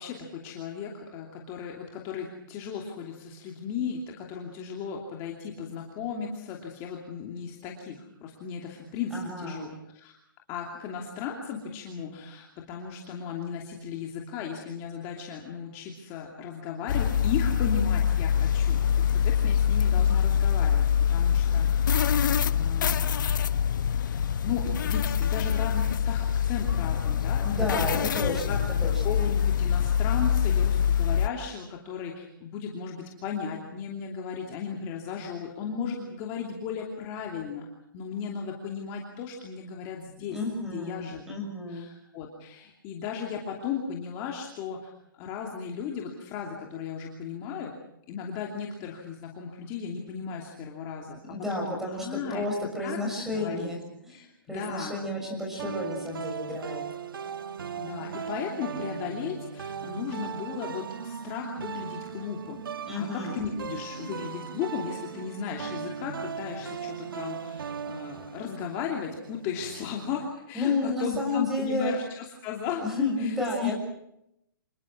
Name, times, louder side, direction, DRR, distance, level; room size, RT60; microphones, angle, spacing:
voice 1, 0.0-10.2 10.5-20.8 21.1-22.0 22.4-23.0 23.9-24.2 24.4-28.6 29.0-37.7 37.9-40.4 40.6-41.3 41.7-44.9 45.2-47.7 48.1-52.4 52.8-53.0 53.3-53.7 54.1-55.0 57.8-62.6 63.0-73.4 73.6-73.7, left 6 dB, 25° left, 0 dB, 2.9 m, -36 dB
voice 2, 9.1-9.6 27.4-28.9 40.3-41.9 51.2-56.8 62.9-63.4 70.5-72.0 72.8-73.7, left 2 dB, 5° right, 1 dB, 6.6 m, -31 dB
sound 1, 16.9-31.3, left 8 dB, 60° left, 1.2 m, -24 dB
sound 2, 55.6-70.3, right 7 dB, 80° right, 1.3 m, -38 dB
27.0 x 21.5 x 6.1 m, 0.79 s
hypercardioid pair, 160°, 11 cm